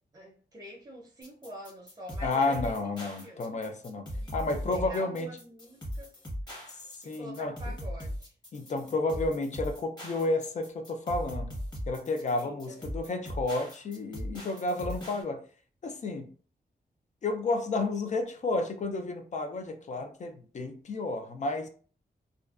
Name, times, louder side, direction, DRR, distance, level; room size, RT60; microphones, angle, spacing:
voice 1, 0.1-2.7 3.2-3.6 4.1-6.2 7.0-8.3 12.3-12.8, right 1 dB, 20° right, 0.6 m, -46 dB
sound 1, 1.2-15.2, equal, 25° left, 0.9 m, -39 dB
voice 2, 2.2-5.3 7.1-7.7 8.5-11.5 11.9-15.4 15.8-16.3 17.2-21.7, left 2 dB, 45° left, 0.4 m, -31 dB
2.4 x 2.2 x 2.3 m
wide cardioid pair, 135°, 17 cm